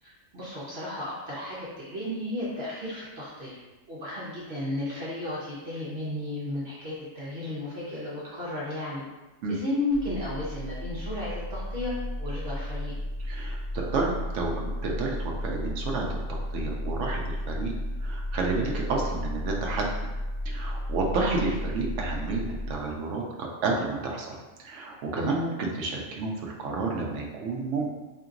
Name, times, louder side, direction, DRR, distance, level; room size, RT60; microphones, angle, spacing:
voice 1, 0.0-3.6 3.9-9.0 9.5-11.9 12.2-12.9 25.1-25.3, left 1 dB, 60° right, -8 dB, 1.2 m, -33 dB
sound 1, 9.9-22.7, left 1 dB, 50° left, 0.7 m, -33 dB
voice 2, 13.2-17.7 18.0-19.9 20.4-24.4 24.6-27.9, right 3 dB, 80° right, -1 dB, 0.9 m, -30 dB
4.2 x 2.9 x 2.5 m, 1.1 s
omnidirectional pair, 1.2 m